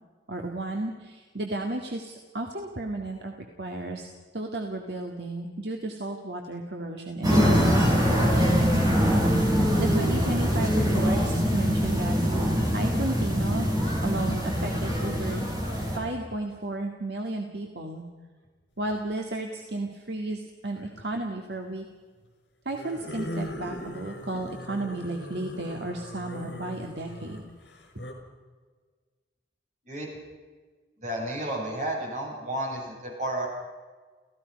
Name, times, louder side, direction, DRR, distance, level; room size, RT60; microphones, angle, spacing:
voice 1, 0.3-8.9 9.8-12.4 12.7-13.7 14.0-15.4 16.0-18.0 18.8-21.9 22.7-27.4, right 2 dB, 65° right, 2 dB, 2.1 m, -33 dB
sound 1, 7.2-16.0, equal, 20° right, 6.0 m, -23 dB
sound 2, 18.8-19.1 20.7-21.2 22.7-28.1, equal, 75° left, 5.8 m, -39 dB
voice 2, 31.0-33.5, right 1 dB, 40° right, -1 dB, 7.9 m, -32 dB
29.5 x 16.5 x 5.4 m, 1.5 s
head